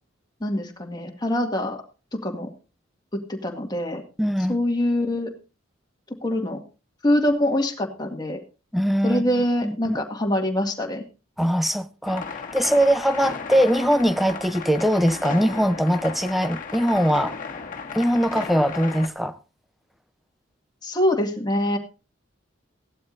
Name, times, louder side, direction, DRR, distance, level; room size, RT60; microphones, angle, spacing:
voice 1, 0.4-1.8 2.1-2.5 3.1-4.0 4.5-5.3 6.2-6.6 7.0-8.4 9.0-11.0 20.8-21.8, left 1 dB, 20° left, 2.1 m, -24 dB
voice 2, 4.2-4.6 8.7-9.3 9.6-10.0 11.4-17.4 17.9-19.4, equal, ahead, 0.7 m, -21 dB
sound 1, 12.0-19.1, left 5 dB, 45° left, 1.9 m, -35 dB
17.0 x 12.0 x 2.6 m
head